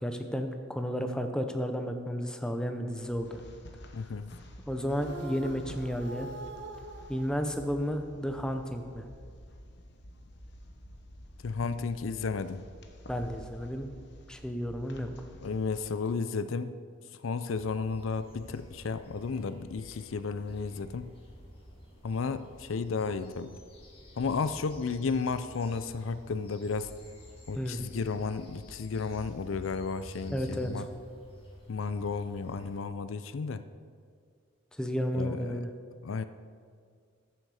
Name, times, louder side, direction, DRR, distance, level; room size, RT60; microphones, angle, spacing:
voice 1, 0.0-3.4 4.7-6.3 7.1-9.0 11.6-11.7 13.1-13.9 14.3-15.1 27.6-27.8 30.3-30.9 34.8-35.7, equal, 5° left, 5 dB, 0.7 m, -32 dB
sound 1, 3.0-16.0, equal, 55° left, 1.1 m, -50 dB
voice 2, 3.9-4.3 11.4-12.6 15.4-16.7 17.2-21.1 22.0-23.6 24.2-26.9 27.5-30.9 31.7-33.6 35.1-35.7 36.0-36.2, left 4 dB, 80° left, 12 dB, 0.5 m, -33 dB
sound 2, 4.9-8.4, right 2 dB, 55° right, 0.9 m, -45 dB
sound 3, 17.5-32.8, equal, 30° left, 2.1 m, -50 dB
14.5 x 7.7 x 4.8 m, 2.1 s
head